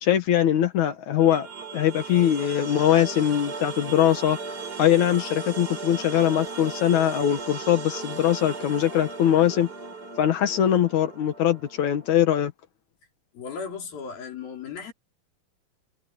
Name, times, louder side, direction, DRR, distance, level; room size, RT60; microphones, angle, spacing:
voice 1, 0.0-1.5 1.7-4.4 4.8-9.7 10.2-12.5, left 11 dB, 60° left, 2.6 m, -22 dB
sound 1, 1.2-12.2, right 4 dB, 25° right, 5.1 m, -37 dB
voice 2, 13.3-14.9, left 6 dB, 80° left, 6.2 m, -36 dB
omnidirectional pair, 4.1 m